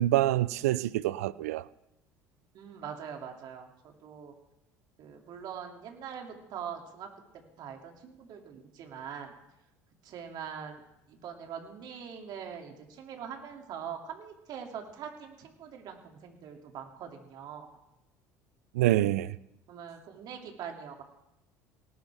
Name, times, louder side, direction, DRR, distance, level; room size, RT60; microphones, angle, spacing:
voice 1, 0.0-1.6 18.7-19.4, right 14 dB, 85° right, 0.5 m, -26 dB
voice 2, 2.5-4.3 5.0-7.1 7.6-9.3 10.0-10.8 11.1-17.7 19.7-21.0, right 8 dB, 60° right, 2.6 m, -43 dB
18.5 x 11.0 x 3.5 m
hypercardioid pair, 75°, 8 cm